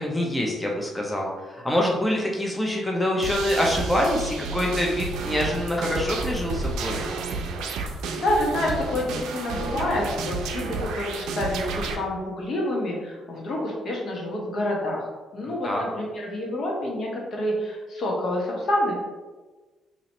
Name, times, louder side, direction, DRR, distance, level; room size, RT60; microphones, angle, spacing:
voice 1, 0.0-7.2 15.6-15.8, left 1 dB, 5° left, -2 dB, 0.6 m, -25 dB
sound 1, 3.2-12.0, right 3 dB, 90° right, 0.4 m, -31 dB
voice 2, 8.2-19.0, left 1 dB, 55° left, -2 dB, 1.1 m, -28 dB
2.9 x 2.8 x 4.1 m, 1.3 s
cardioid pair, 90°, 0 cm